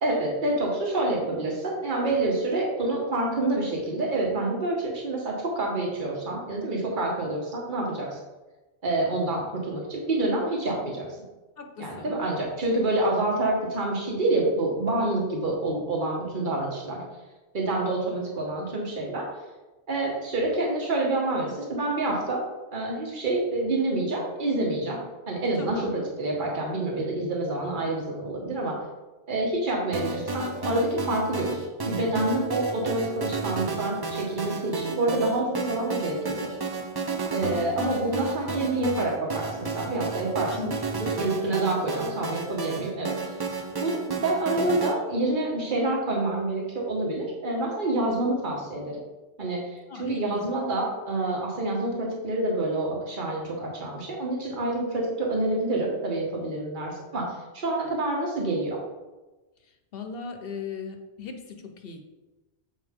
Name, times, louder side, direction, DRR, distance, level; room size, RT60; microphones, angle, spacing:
voice 1, 0.0-8.2 8.8-11.1 11.8-17.0 17.5-19.3 19.9-22.4 22.7-25.0 25.3-25.8 26.2-28.7 29.3-36.5 37.3-40.5 41.2-43.5 43.8-49.0 49.4-57.2 57.5-58.8, right 2 dB, 45° right, -2 dB, 1.5 m, -27 dB
voice 2, 11.6-12.1 25.6-25.9 40.5-41.0 49.9-50.5 59.9-62.0, left 4 dB, 60° left, 5 dB, 1.0 m, -37 dB
sound 1, 29.9-44.9, right 3 dB, 30° right, 0.5 m, -32 dB
7.5 x 4.9 x 3.7 m, 1.1 s
omnidirectional pair, 1.1 m